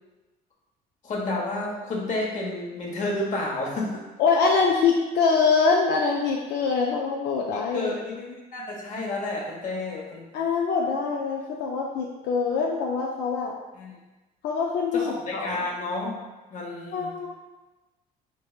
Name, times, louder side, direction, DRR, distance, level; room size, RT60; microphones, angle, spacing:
voice 1, 1.0-4.0 7.7-10.3 13.7-14.0 14.9-16.2 16.5-17.2, left 2 dB, 45° left, -2 dB, 1.0 m, -31 dB
voice 2, 4.2-7.9 10.3-13.5 14.4-15.5 16.9-17.3, left 5 dB, 80° left, -1 dB, 0.5 m, -24 dB
4.2 x 3.3 x 2.4 m, 1.1 s
cardioid pair, 110°, 17 cm